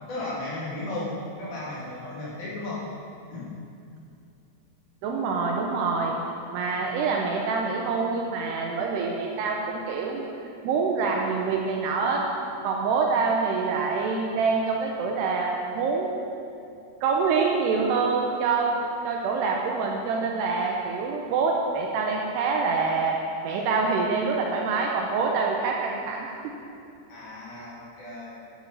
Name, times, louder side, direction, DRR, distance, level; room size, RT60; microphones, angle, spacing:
voice 1, 0.1-1.1 1.4-2.8 3.3-3.5 27.1-28.4, left 2 dB, 50° left, -8 dB, 3.8 m, -35 dB
voice 2, 5.0-6.2 6.5-10.2 10.6-12.2 12.6-16.1 17.0-18.7 19.0-23.2 23.4-26.3, right 4 dB, 75° right, 0 dB, 2.8 m, -26 dB
11.0 x 9.5 x 5.6 m, 2.5 s
omnidirectional pair, 5.0 m